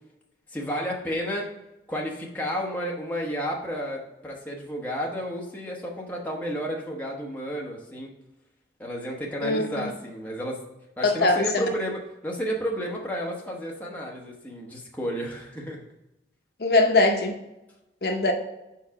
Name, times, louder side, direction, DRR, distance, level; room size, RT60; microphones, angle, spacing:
voice 1, 0.5-1.5 1.9-8.1 8.8-10.6 11.0-15.8, equal, 10° left, -2 dB, 1.0 m, -31 dB
voice 2, 9.4-9.8 11.0-11.6 16.6-17.4 18.0-18.3, left 2 dB, 60° left, 4 dB, 0.7 m, -21 dB
4.7 x 4.7 x 4.7 m, 0.94 s
head